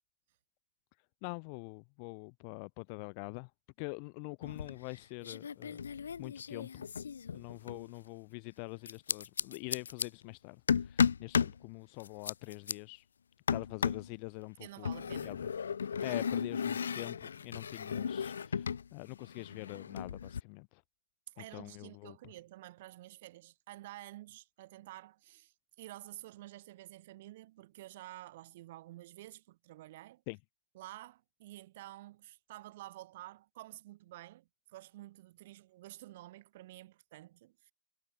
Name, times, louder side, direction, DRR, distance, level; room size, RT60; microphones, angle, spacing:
voice 1, 1.2-3.5 3.8-5.8 6.2-6.9 7.3-13.1 13.5-14.9 15.2-15.5 16.0-20.8 21.4-22.2 30.3-30.4, left 40 dB or more, 25° left, 1.2 m, -44 dB
sound 1, 4.4-5.0 5.2-7.9 8.9-10.1 10.7-11.6 12.0-12.7 13.5-14.1 14.9-18.9 19.1-20.4, left 7 dB, 75° left, 0.8 m, -34 dB
voice 2, 14.6-15.4 16.1-16.2 21.4-30.2 30.7-37.7, right 16 dB, 35° right, 2.4 m, -50 dB
hypercardioid pair, 165°, 0 cm